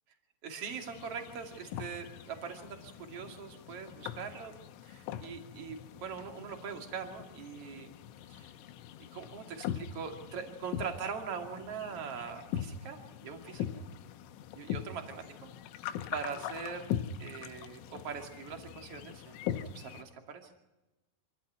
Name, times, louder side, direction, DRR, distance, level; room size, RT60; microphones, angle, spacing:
voice 1, 0.4-4.5 4.8-7.9 8.3-8.5 9.0-13.8 14.5-15.5 16.1-20.5, right 6 dB, 40° right, 4 dB, 2.5 m, -42 dB
sound 1, 0.7-20.0, left 9 dB, 80° left, 3.4 m, -42 dB
26.5 x 15.5 x 9.2 m, 1.0 s
omnidirectional pair, 5.7 m